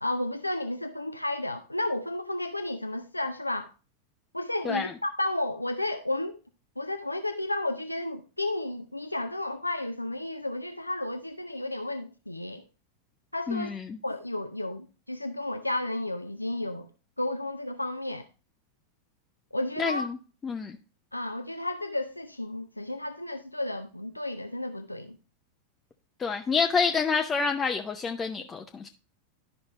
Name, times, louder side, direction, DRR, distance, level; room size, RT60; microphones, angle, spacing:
voice 1, 0.0-3.7 4.3-6.4 6.8-12.6 13.3-13.7 14.0-16.9 17.2-18.3 19.5-20.1 21.1-25.2, left 1 dB, 85° left, 0.4 m, -32 dB
voice 2, 13.5-14.0 19.8-20.2 20.4-20.8 26.2-28.9, left 5 dB, 20° left, 0.5 m, -28 dB
12.0 x 5.2 x 2.9 m
figure-of-eight pair, 90°, 0 cm